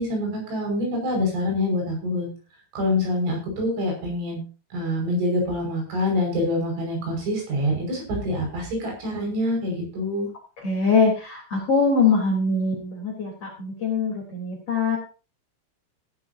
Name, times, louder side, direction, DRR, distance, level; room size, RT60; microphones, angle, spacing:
voice 1, 0.0-2.3 2.7-4.4 4.7-10.3, left 1 dB, 65° right, 1 dB, 8.0 m, -26 dB
voice 2, 10.6-15.0, left 4 dB, 30° left, -2 dB, 4.0 m, -23 dB
17.0 x 11.5 x 2.8 m, 0.33 s
omnidirectional pair, 6.0 m